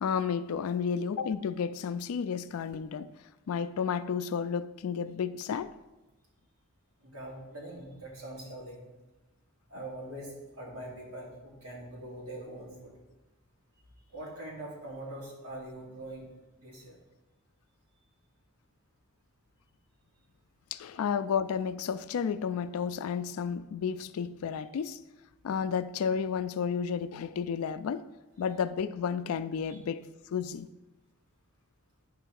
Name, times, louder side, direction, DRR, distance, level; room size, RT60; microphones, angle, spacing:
voice 1, 0.0-3.1 3.5-5.7 20.7-25.0 25.4-28.1 28.4-30.0 30.3-30.7, left 6 dB, 85° left, 0.3 m, -32 dB
voice 2, 7.0-8.8 9.7-12.9 14.1-16.3 16.6-17.0, right 1 dB, 85° right, 2.6 m, -43 dB
9.7 x 3.4 x 6.3 m
head